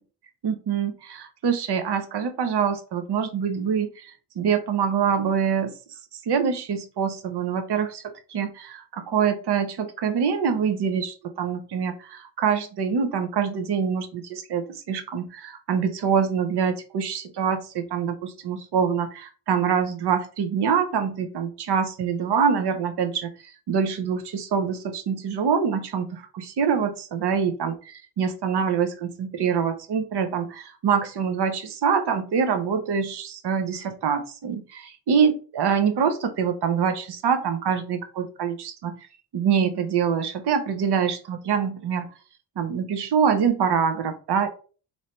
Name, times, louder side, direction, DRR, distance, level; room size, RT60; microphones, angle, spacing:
voice 1, 0.4-5.7 6.3-23.3 23.7-27.7 28.2-39.0 39.3-42.1 42.6-44.5, right 7 dB, 60° right, 8 dB, 0.7 m, -25 dB
3.1 x 2.7 x 4.2 m, 0.37 s
wide cardioid pair, 115°, 45 cm